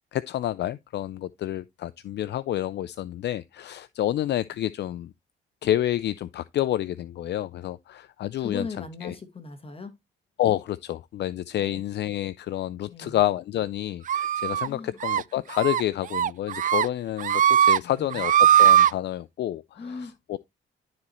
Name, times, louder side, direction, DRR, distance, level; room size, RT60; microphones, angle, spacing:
voice 1, 0.1-5.1 5.6-8.7 9.0-9.1 10.4-19.9 20.3-20.4, left 13 dB, 60° left, 0.4 m, -29 dB
voice 2, 8.4-10.0 11.6-11.8 12.9-13.2 14.7-15.0 17.8-18.2 19.7-20.4, left 3 dB, 30° left, 1.4 m, -39 dB
sound 1, 14.1-14.7 15.0-15.2 15.6-15.8 16.1-16.9 17.2-17.8 18.1-18.9, right 10 dB, 40° right, 0.4 m, -19 dB
12.0 x 4.2 x 3.1 m
cardioid pair, 90°, 20 cm